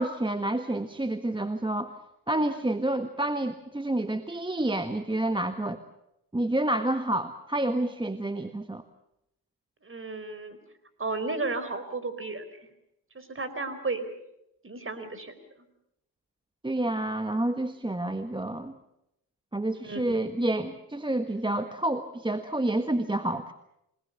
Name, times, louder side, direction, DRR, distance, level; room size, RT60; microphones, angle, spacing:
voice 1, 0.0-1.9 2.3-5.8 6.3-8.8 16.6-18.7 19.5-23.5, right 1 dB, 10° right, 9 dB, 1.5 m, -29 dB
voice 2, 9.8-10.6 11.0-12.4 13.1-14.1 14.6-15.3 19.8-20.2, right 3 dB, 30° right, 11 dB, 4.5 m, -33 dB
27.5 x 20.0 x 6.9 m, 0.82 s
supercardioid pair, 60°, 39 cm